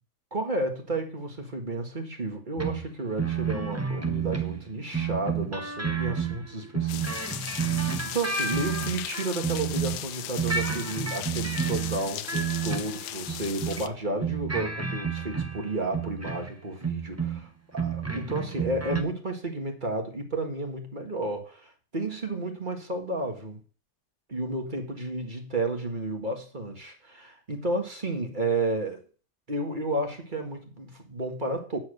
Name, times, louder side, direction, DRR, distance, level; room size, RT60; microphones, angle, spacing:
voice 1, 0.3-23.6 24.3-29.0 29.5-31.8, right 2 dB, 30° right, 3 dB, 1.9 m, -32 dB
sound 1, 2.6-10.1 10.4-13.9 14.2-16.5 16.8-17.5 17.7-19.0, right 6 dB, 15° right, 0.7 m, -30 dB
sound 2, 6.9-13.9, left 12 dB, 80° left, 1.2 m, -37 dB
9.5 x 7.1 x 6.6 m, 0.39 s
omnidirectional pair, 1.7 m